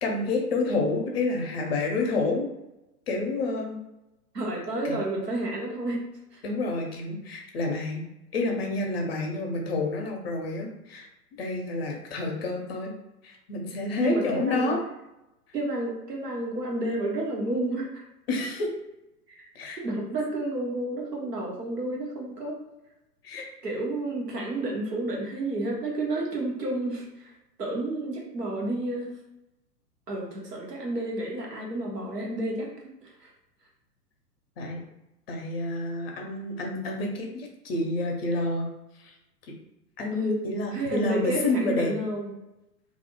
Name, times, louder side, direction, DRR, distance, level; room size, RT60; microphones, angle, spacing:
voice 1, 0.0-2.5 3.1-3.8 4.8-5.0 6.4-8.1 8.3-11.1 11.4-12.9 13.2-14.8 18.3-18.7 19.6-19.8 23.2-23.5 34.6-34.8 35.3-38.7 39.0-39.1 40.0-41.9, left 2 dB, 40° left, 1 dB, 0.6 m, -29 dB
voice 2, 4.3-6.0 6.3-6.4 14.0-14.7 15.5-18.0 19.3-19.5 19.8-22.6 23.6-27.3 27.6-29.2 30.1-32.7 33.2-33.3 40.1-42.3, right 1 dB, 80° right, -1 dB, 0.9 m, -30 dB
2.4 x 2.0 x 2.8 m, 0.92 s
figure-of-eight pair, 110°, 48 cm